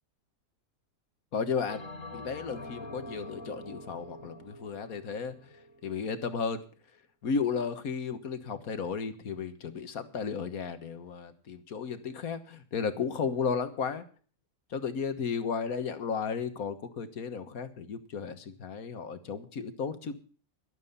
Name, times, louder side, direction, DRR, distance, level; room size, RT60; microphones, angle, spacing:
voice 1, 1.3-1.9 2.1-6.6 7.2-14.0 14.7-20.1, left 6 dB, 90° left, 10 dB, 1.8 m, -34 dB
Bell, 1.7-6.3, left 1 dB, 65° left, 2.2 m, -45 dB
12.5 x 12.0 x 5.5 m, 0.41 s
omnidirectional pair, 1.5 m